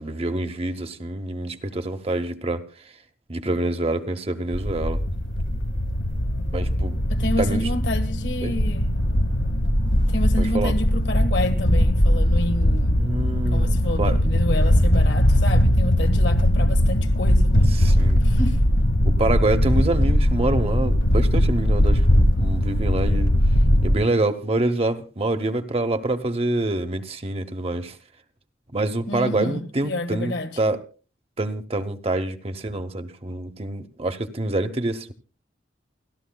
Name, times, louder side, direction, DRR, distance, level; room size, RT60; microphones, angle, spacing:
voice 1, 0.0-2.6 3.3-5.0 6.5-7.0 7.4-7.7 8.4-8.6 10.4-10.8 13.0-14.2 17.7-18.2 19.0-23.3 23.8-28.0 28.7-30.8 31.4-35.1, right 2 dB, 30° right, 0.9 m, -26 dB
sound 1, 4.5-24.0, equal, 85° left, 1.8 m, -20 dB
voice 2, 7.1-8.9 10.1-13.1 13.5-17.8 18.2-18.6 29.1-30.5, left 1 dB, 60° left, 1.7 m, -29 dB
29.0 x 12.5 x 2.3 m
head